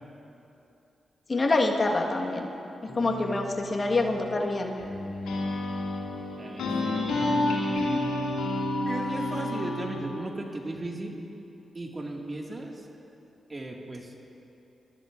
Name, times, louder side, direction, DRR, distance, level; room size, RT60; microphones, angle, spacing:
voice 1, 1.3-2.5 2.8-4.7, left 2 dB, 45° left, 1 dB, 1.5 m, -26 dB
sound 1, 2.9-10.0, left 1 dB, 90° left, 2.2 m, -30 dB
voice 2, 6.4-7.0 8.8-11.3 11.7-12.9 13.5-14.1, right 1 dB, 35° right, 0 dB, 2.0 m, -36 dB
23.0 x 14.0 x 2.5 m, 2.8 s
supercardioid pair, 45°, 0 cm